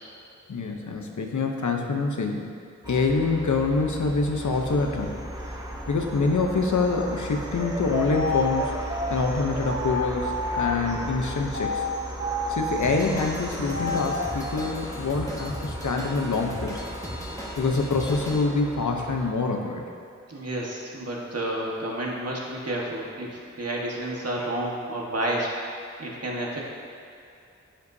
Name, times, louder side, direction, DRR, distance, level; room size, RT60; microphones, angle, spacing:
voice 1, 0.5-2.6 2.9-5.2 5.9-11.8 12.5-16.8 17.6-19.9, left 3 dB, 85° left, 3 dB, 0.8 m, -26 dB
sound 1, 2.8-19.3, equal, 15° right, 1.0 m, -36 dB
sound 2, 7.5-10.9 11.5-14.4, left 1 dB, 35° right, 1.1 m, -31 dB
Drum kit / Drum, 12.8-18.4, equal, 10° left, 1.3 m, -38 dB
voice 2, 20.3-25.5 25.8-26.6, right 1 dB, 55° right, -3 dB, 1.5 m, -30 dB
10.0 x 8.2 x 2.7 m, 2.6 s
wide cardioid pair, 70°, 29 cm